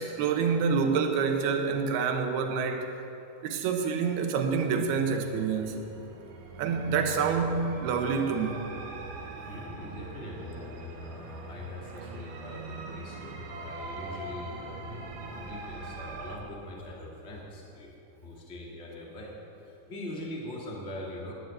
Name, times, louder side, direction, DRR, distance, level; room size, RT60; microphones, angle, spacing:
voice 1, 0.0-2.9 3.4-5.8 6.6-8.7, right 5 dB, 80° right, 4 dB, 3.0 m, -27 dB
sound 1, 5.0-16.4, right 3 dB, 65° right, 2.3 m, -42 dB
voice 2, 9.4-17.9 18.2-19.3 19.6-21.3, left 1 dB, 25° left, -3 dB, 1.9 m, -42 dB
11.0 x 10.5 x 9.1 m, 2.9 s
omnidirectional pair, 4.5 m